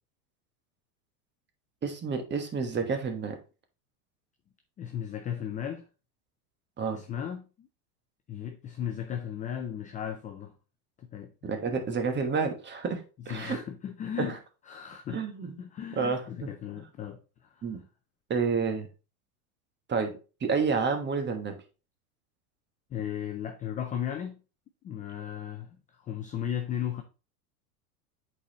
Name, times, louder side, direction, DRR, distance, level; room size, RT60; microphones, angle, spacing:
voice 1, 1.8-3.4 6.8-7.0 11.4-13.6 14.2-14.3 15.1-15.5 16.0-16.2 17.6-17.8 18.3-18.9 19.9-21.6, right 5 dB, 25° right, 1.3 m, -29 dB
voice 2, 4.8-5.9 6.9-7.7 8.3-10.6 11.0-11.3 13.3-14.4 14.6-15.2 15.6-17.7 22.9-24.4 24.8-27.0, left 9 dB, 20° left, 0.4 m, -36 dB
8.2 x 4.1 x 2.9 m
hypercardioid pair, 110°, 47 cm